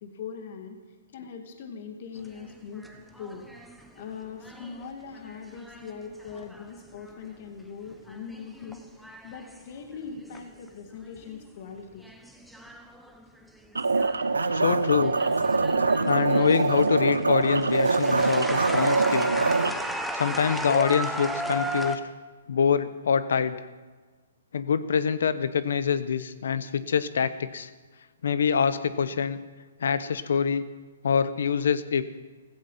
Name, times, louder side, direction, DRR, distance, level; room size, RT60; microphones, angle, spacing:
voice 1, 0.0-0.8 1.1-2.8 3.2-12.1, left 6 dB, 50° left, 5 dB, 2.1 m, -41 dB
sound 1, 2.2-7.5 7.9-10.7 11.0-11.5 12.0-14.7 15.0-22.0, equal, ahead, 1.2 m, -36 dB
sound 2, 13.8-19.7, right 3 dB, 90° right, 0.9 m, -24 dB
voice 2, 14.5-15.2 16.0-19.3 20.1-22.0 22.5-23.7 24.5-27.7 28.2-29.4 29.8-30.6 31.0-32.0, left 6 dB, 70° left, 14 dB, 1.0 m, -25 dB
15.5 x 15.0 x 5.7 m, 1.4 s
hypercardioid pair, 130°, 0 cm